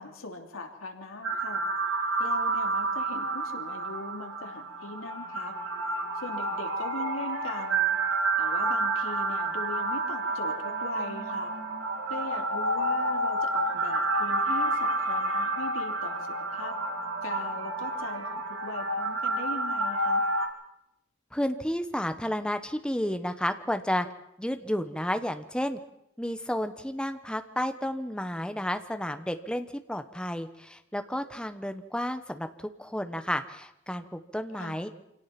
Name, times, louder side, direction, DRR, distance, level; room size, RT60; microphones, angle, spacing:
voice 1, 0.0-1.7 2.2-5.5 6.1-8.0 8.4-11.6 12.1-16.8 17.2-20.2 34.6-34.9, left 3 dB, 85° left, 3 dB, 3.0 m, -40 dB
sound 1, 1.2-20.5, right 2 dB, 70° right, 3.1 m, -29 dB
voice 2, 21.3-24.1 24.4-25.8 26.2-34.9, equal, 5° left, 8 dB, 1.0 m, -31 dB
26.0 x 17.5 x 5.9 m, 0.80 s
head